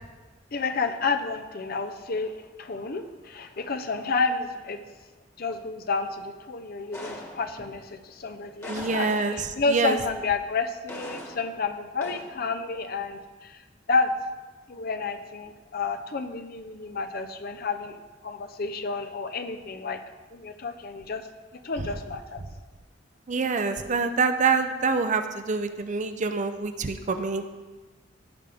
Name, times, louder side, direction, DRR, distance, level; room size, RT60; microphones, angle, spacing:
voice 1, 0.5-2.3 2.6-4.8 5.4-13.6 13.9-14.1 14.7-18.0 18.2-20.0 20.3-21.3 21.6-22.4, left 4 dB, 55° left, 7 dB, 0.7 m, -30 dB
sound 1, 6.9-7.8 8.6-9.7 10.9-11.6 12.0-12.4, left 1 dB, 15° left, 1.4 m, -40 dB
voice 2, 8.7-10.0 23.3-27.5, right 4 dB, 40° right, 8 dB, 0.6 m, -26 dB
16.0 x 5.3 x 3.5 m, 1.3 s
head